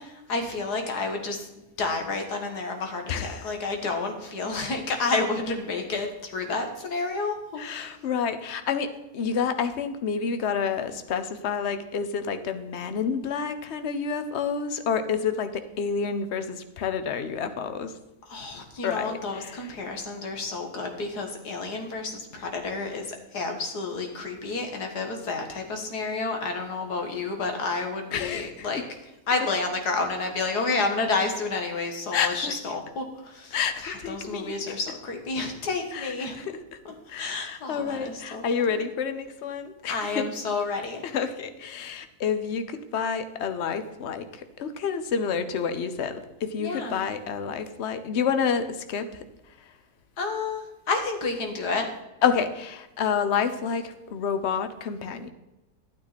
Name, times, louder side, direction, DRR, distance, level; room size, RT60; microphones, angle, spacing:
voice 1, 0.0-7.6 18.3-28.8 29.3-33.6 33.8-36.4 36.9-38.4 38.7-38.8 39.9-41.0 46.6-47.1 50.2-51.9, left 3 dB, 85° left, 4 dB, 2.1 m, -30 dB
voice 2, 3.1-3.5 7.6-17.9 18.8-19.7 28.1-28.8 32.1-32.5 33.5-34.6 35.9-36.8 37.1-40.3 41.0-49.2 52.2-55.3, left 6 dB, 50° left, 10 dB, 1.0 m, -29 dB
12.5 x 9.0 x 4.2 m, 0.98 s
omnidirectional pair, 1.7 m